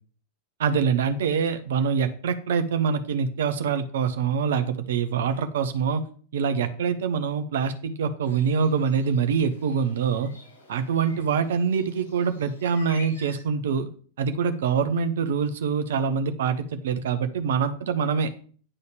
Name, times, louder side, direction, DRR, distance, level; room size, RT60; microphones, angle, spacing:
voice 1, 0.6-6.0 6.3-10.3 10.7-13.9 14.2-18.3, right 6 dB, 60° right, 9 dB, 1.0 m, -25 dB
sound 1, 8.2-13.4, left 3 dB, 75° left, 4.6 m, -49 dB
10.0 x 4.1 x 6.8 m, 0.43 s
figure-of-eight pair, 90°, 0 cm